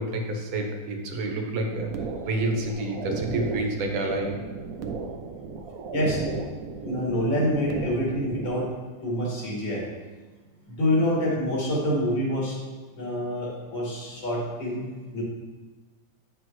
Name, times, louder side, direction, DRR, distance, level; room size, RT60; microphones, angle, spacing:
voice 1, 0.0-1.9 2.3-4.4, right 2 dB, 85° right, 3 dB, 1.8 m, -28 dB
sound 1, 1.7-8.7, right 4 dB, 65° right, 0.9 m, -35 dB
voice 2, 6.8-8.7 9.0-9.8 10.7-12.5 13.0-14.8 15.1-15.2, left 1 dB, 75° left, -4 dB, 2.9 m, -26 dB
9.6 x 6.1 x 3.1 m, 1.3 s
omnidirectional pair, 2.1 m